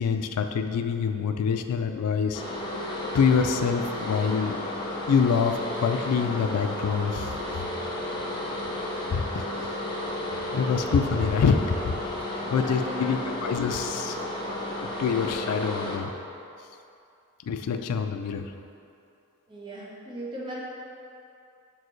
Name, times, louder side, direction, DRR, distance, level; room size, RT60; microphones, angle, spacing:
voice 1, 0.0-2.4 3.1-4.6 5.1-7.4 9.1-9.8 10.5-12.0 12.3-14.2 14.8-16.1 17.5-18.5, left 6 dB, 90° left, 7 dB, 0.4 m, -26 dB
sound 1, 2.3-16.0, left 1 dB, 20° left, 0.7 m, -33 dB
voice 2, 12.4-13.3 16.0-16.3 19.5-20.6, equal, 20° right, -5 dB, 1.0 m, -39 dB
6.7 x 4.5 x 3.1 m, 2.6 s
head